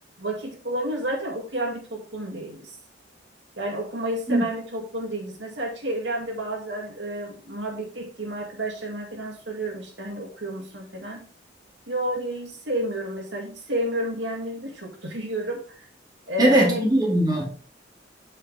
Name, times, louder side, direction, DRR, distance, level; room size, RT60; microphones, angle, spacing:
voice 1, 0.2-2.7 3.6-11.2 11.9-15.8 16.3-17.1, right 1 dB, 70° right, 0 dB, 2.4 m, -31 dB
voice 2, 16.4-17.8, right 1 dB, 20° right, -2 dB, 2.2 m, -21 dB
8.6 x 5.6 x 3.4 m, 0.38 s
head